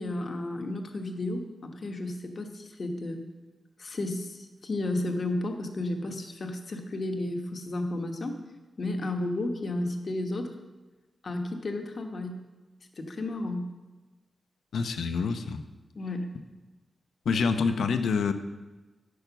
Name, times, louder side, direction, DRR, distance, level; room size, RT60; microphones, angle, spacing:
voice 1, 0.0-3.2 3.8-8.4 8.8-10.5 11.2-12.4 13.0-13.7 15.9-16.3, left 2 dB, 40° left, 4 dB, 1.2 m, -32 dB
voice 2, 14.7-15.6 17.2-18.3, left 5 dB, 80° left, 8 dB, 0.8 m, -26 dB
10.5 x 6.5 x 7.0 m, 1.2 s
wide cardioid pair, 165°, 0 cm